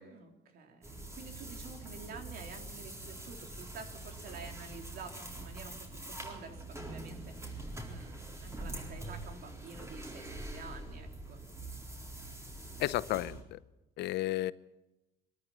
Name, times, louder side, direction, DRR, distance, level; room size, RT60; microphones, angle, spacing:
voice 1, 0.0-11.4, right 5 dB, 65° right, 4 dB, 3.7 m, -49 dB
sound 1, 0.8-13.4, right 2 dB, 15° right, 4.1 m, -44 dB
voice 2, 12.8-13.6 14.0-14.5, left 16 dB, 80° left, 17 dB, 0.7 m, -32 dB
23.0 x 13.5 x 8.8 m, 0.97 s
cardioid pair, 110°, 17 cm